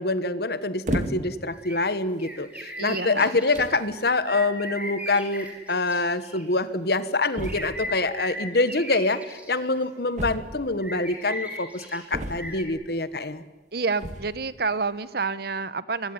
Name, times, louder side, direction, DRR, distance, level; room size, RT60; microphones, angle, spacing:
voice 1, 0.0-13.4, left 2 dB, 60° left, 13 dB, 1.4 m, -26 dB
sound 1, 0.9-1.5 2.2-2.4 3.2-3.3 3.5-3.9 5.1-5.2 5.4-5.5 5.7-5.8 7.3-7.9 10.2-10.8 12.1-12.8 13.9-14.4, right 1 dB, 40° right, 2.4 m, -32 dB
sound 2, 1.5-1.8 2.2-3.6 4.2-6.5 7.3-9.8 10.8-12.0 12.3-12.6, equal, 10° right, 5.1 m, -37 dB
voice 2, 2.8-3.3 13.7-16.1, right 4 dB, 55° right, 16 dB, 1.0 m, -28 dB
24.0 x 23.0 x 9.8 m, 1.2 s
head